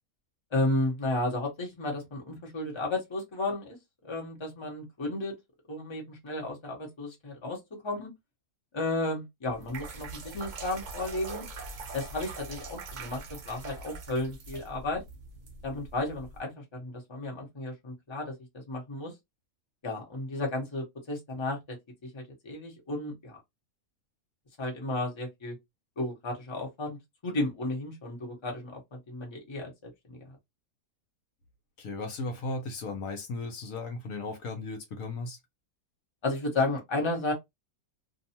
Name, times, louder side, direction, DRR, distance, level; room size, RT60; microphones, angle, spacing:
voice 1, 0.5-3.8 4.0-5.4 5.7-8.1 8.7-11.4 11.9-15.0 15.6-19.1 19.8-21.8 22.0-23.4 24.6-25.6 26.0-27.0 27.2-30.4 36.2-37.3, left 2 dB, 20° left, 0.9 m, -33 dB
sound 1, 9.4-16.4, right 4 dB, 55° right, 0.5 m, -43 dB
voice 2, 31.8-35.4, left 3 dB, 70° left, 1.1 m, -36 dB
2.6 x 2.3 x 2.8 m
omnidirectional pair, 1.5 m